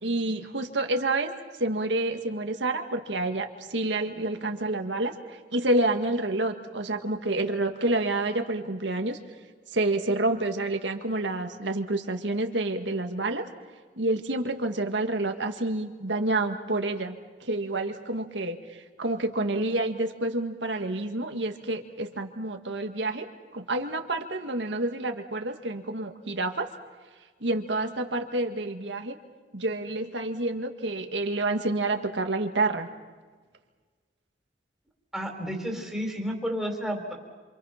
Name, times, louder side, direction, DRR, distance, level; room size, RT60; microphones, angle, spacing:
voice 1, 0.0-1.3 1.6-9.2 9.7-13.4 14.0-23.3 23.5-26.7 27.4-29.2 29.5-32.9, right 2 dB, 70° right, 5 dB, 1.9 m, -28 dB
voice 2, 35.1-37.1, equal, ahead, 1 dB, 4.0 m, -31 dB
27.5 x 27.0 x 5.9 m, 1.4 s
head